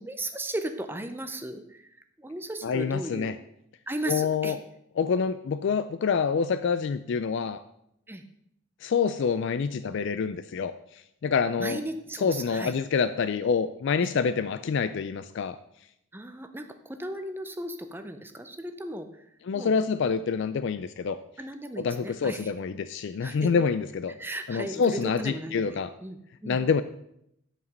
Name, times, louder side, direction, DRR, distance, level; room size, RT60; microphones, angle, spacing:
voice 1, 0.0-1.9 2.2-3.3 3.9-4.6 8.1-8.2 11.6-12.7 14.0-14.1 16.1-19.2 19.5-19.8 21.4-22.5 23.2-23.5 24.2-26.6, right 1 dB, 10° right, 7 dB, 0.5 m, -36 dB
voice 2, 2.6-3.4 4.1-4.6 5.0-7.6 8.8-11.8 12.2-15.6 19.5-21.2 21.8-24.1 24.5-25.9 26.5-26.8, left 5 dB, 55° left, 12 dB, 0.3 m, -27 dB
11.0 x 5.0 x 5.3 m, 0.76 s
head